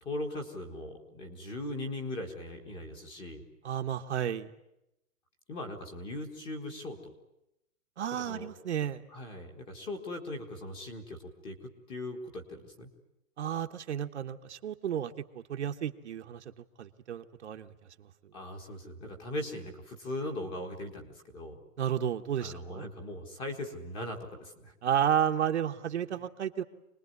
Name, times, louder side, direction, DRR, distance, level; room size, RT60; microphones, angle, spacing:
voice 1, 0.0-3.4 5.5-7.1 8.3-8.5 9.1-12.9 18.3-21.6 22.4-24.7, left 1 dB, 10° left, 5 dB, 1.5 m, -39 dB
voice 2, 3.6-4.5 8.0-9.0 13.4-16.4 16.8-17.7 21.8-22.9 24.8-26.6, right 9 dB, 50° right, 6 dB, 1.2 m, -32 dB
26.0 x 20.0 x 9.5 m, 0.87 s
hypercardioid pair, 175°, 44 cm